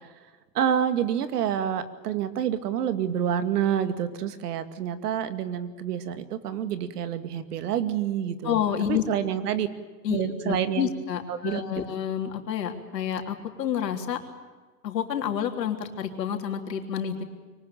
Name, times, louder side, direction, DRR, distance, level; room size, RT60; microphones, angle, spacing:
voice 1, 0.5-8.6 8.9-9.7 10.1-10.9 11.3-11.6, right 9 dB, 65° right, 10 dB, 2.4 m, -28 dB
voice 2, 8.4-9.0 10.0-14.2 14.8-17.2, left 9 dB, 80° left, 4 dB, 3.6 m, -29 dB
23.5 x 19.0 x 8.9 m, 1.3 s
hypercardioid pair, 120°, 49 cm